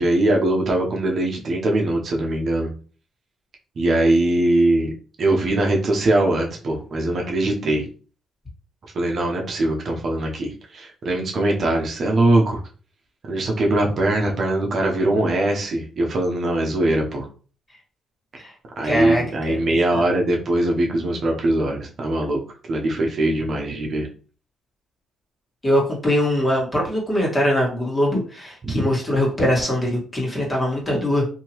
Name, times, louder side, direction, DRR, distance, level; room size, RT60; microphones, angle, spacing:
voice 1, 0.0-2.7 3.8-4.9 5.2-7.9 8.9-12.6 13.3-17.3 18.8-22.4 22.7-24.1 28.7-28.8, right 1 dB, 50° right, 0 dB, 0.8 m, -21 dB
voice 2, 18.8-20.0 25.6-31.3, equal, 20° left, -3 dB, 1.6 m, -22 dB
2.8 x 2.8 x 3.0 m, 0.39 s
cardioid pair, 90°, 0 cm